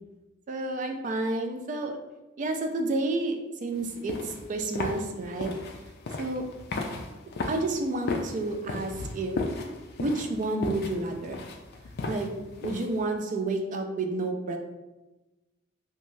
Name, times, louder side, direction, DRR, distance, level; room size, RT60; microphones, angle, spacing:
voice 1, 0.5-2.0 2.4-5.5 6.2-6.4 7.5-9.4 10.0-11.4 12.1-12.3 12.6-14.6, right 2 dB, 40° right, 5 dB, 0.3 m, -30 dB
sound 1, 3.8-13.0, left 3 dB, 55° left, 0.3 m, -35 dB
3.1 x 2.3 x 2.6 m, 1.1 s
head